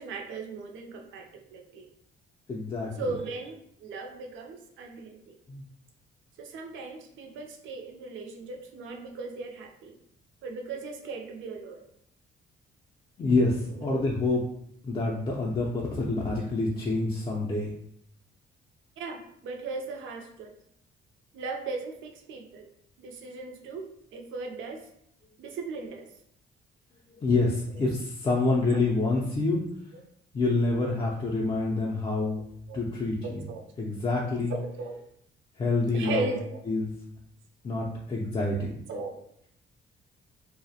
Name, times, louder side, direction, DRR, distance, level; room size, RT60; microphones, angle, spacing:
voice 1, 0.0-1.9 3.0-5.4 6.4-10.0 10.4-11.8 13.8-14.0 19.0-20.5 21.3-22.7 23.0-24.9 25.4-26.1 29.9-30.0 30.9-31.0 32.7-32.8 33.2-33.6 34.5-35.0 35.9-36.6 38.9-39.2, right 3 dB, 75° right, 3 dB, 0.4 m, -37 dB
voice 2, 2.5-3.1 5.5-5.6 13.2-14.4 14.8-17.7 27.2-29.6 30.3-32.4 32.7-33.4 33.8-34.6 35.6-36.2 36.7-36.9 37.6-38.7, left 3 dB, 25° left, -3 dB, 0.4 m, -27 dB
2.3 x 2.0 x 2.7 m, 0.70 s
cardioid pair, 90°, 20 cm